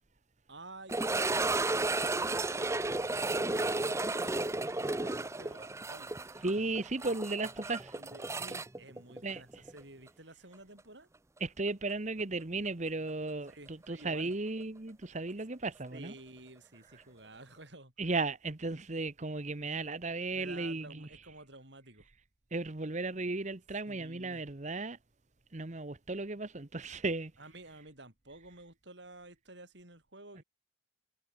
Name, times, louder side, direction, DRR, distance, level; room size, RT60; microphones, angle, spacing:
voice 1, 0.5-6.1 7.9-11.1 13.5-14.3 15.9-17.9 20.3-22.1 23.9-24.4 27.4-30.4, right 2 dB, 65° right, 7.9 m, -52 dB
sound 1, 0.9-9.8 10.1-10.2 10.8-10.9 13.5-13.6, right 2 dB, 15° right, 0.7 m, -33 dB
voice 2, 6.4-8.0 9.2-9.6 11.4-16.1 16.9-17.0 18.0-21.1 22.5-25.0 25.5-27.3, right 3 dB, 40° right, 1.1 m, -35 dB
head